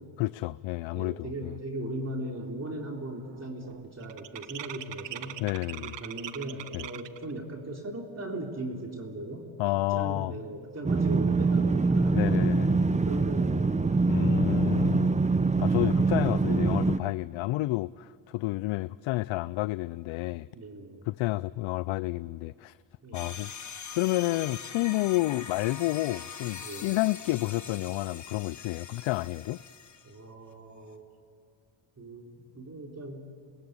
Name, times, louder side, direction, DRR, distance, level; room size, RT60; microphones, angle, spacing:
voice 1, 0.2-1.5 5.4-6.0 6.7-6.8 9.6-10.3 12.1-13.0 14.1-15.1 15.6-20.5 21.1-22.7 23.1-23.5 23.9-29.6, left 19 dB, 75° left, 0.6 m, -30 dB
voice 2, 0.9-5.4 5.8-9.5 9.9-12.2 12.9-14.0 20.5-21.0 23.0-23.3 26.6-26.9 30.0-31.0 32.0-33.3, right 1 dB, 35° right, 3.8 m, -38 dB
sound 1, 1.6-1.7 2.0-2.4 2.7-7.3, right 12 dB, 65° right, 1.0 m, -42 dB
sound 2, 10.8-17.0, right 3 dB, 15° right, 0.7 m, -24 dB
sound 3, 23.1-30.1, left 6 dB, 40° left, 1.7 m, -43 dB
27.0 x 20.0 x 9.6 m
cardioid pair, 80°, 47 cm